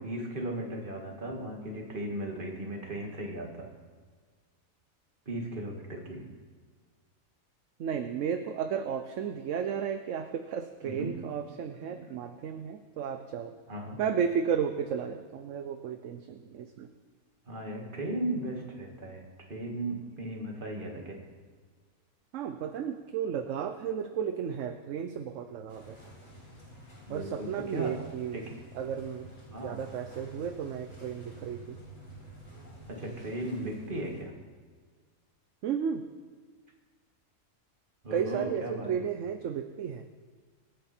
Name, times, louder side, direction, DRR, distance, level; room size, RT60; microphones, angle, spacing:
voice 1, 0.0-3.7 5.3-6.3 10.8-11.2 11.8-12.0 13.7-14.0 17.5-21.2 27.1-28.0 28.3-28.6 29.5-29.8 32.9-34.3 38.0-38.9, right 1 dB, 40° right, 1 dB, 2.2 m, -36 dB
voice 2, 7.8-13.5 14.0-16.9 22.3-26.0 27.1-28.5 28.7-29.3 29.6-31.8 35.6-36.0 38.1-40.0, right 7 dB, 65° right, 8 dB, 1.0 m, -33 dB
sound 1, 25.7-34.2, right 1 dB, 65° left, 6.3 m, -50 dB
25.5 x 9.1 x 4.4 m, 1.5 s
omnidirectional pair, 1.4 m